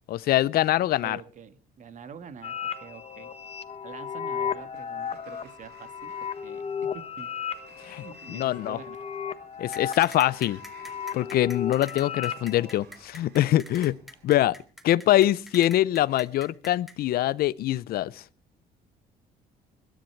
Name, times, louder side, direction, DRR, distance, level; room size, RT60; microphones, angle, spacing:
voice 1, 0.1-1.2 7.8-8.8 9.6-10.6 11.1-14.0 14.2-14.6 14.8-18.2, left 14 dB, 65° left, 0.6 m, -24 dB
voice 2, 1.0-3.3 3.8-7.3 7.8-9.1, right 7 dB, 50° right, 1.7 m, -46 dB
sound 1, 2.4-12.8, left 7 dB, 35° left, 1.2 m, -35 dB
Sliding door, 4.0-14.5, right 6 dB, 75° right, 4.9 m, -58 dB
sound 2, 9.7-16.9, equal, ahead, 2.3 m, -44 dB
21.5 x 10.5 x 4.6 m
cardioid pair, 110°, 17 cm